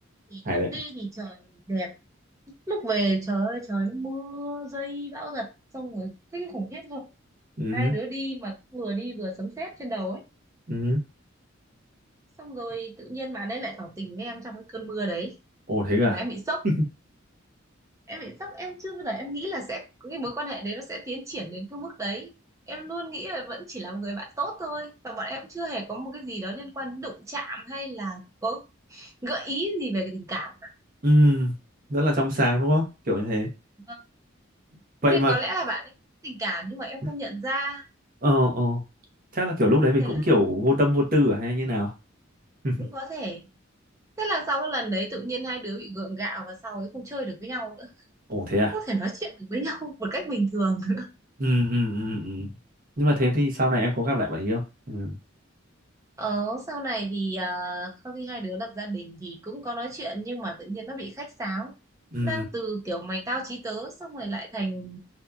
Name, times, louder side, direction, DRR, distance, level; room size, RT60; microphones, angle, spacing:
voice 1, 0.3-1.9 2.7-5.5 5.7-7.1 7.7-10.2 12.4-15.3 16.1-16.6 18.1-22.3 22.7-28.6 28.9-30.5 33.9-34.0 35.0-35.9 36.2-37.8 40.0-40.2 42.8-43.4 44.2-47.9 48.7-51.1 56.2-61.7 62.2-65.0, right 2 dB, 15° right, -1 dB, 0.6 m, -32 dB
voice 2, 7.6-7.9 10.7-11.0 15.7-16.2 31.0-31.5 31.9-33.5 35.0-35.3 37.0-37.1 38.2-38.8 39.3-41.9 42.6-42.7 48.3-48.7 51.4-52.5 53.0-55.2 62.1-62.4, left 1 dB, 45° right, 0 dB, 0.9 m, -23 dB
2.8 x 2.4 x 2.3 m, 0.27 s
head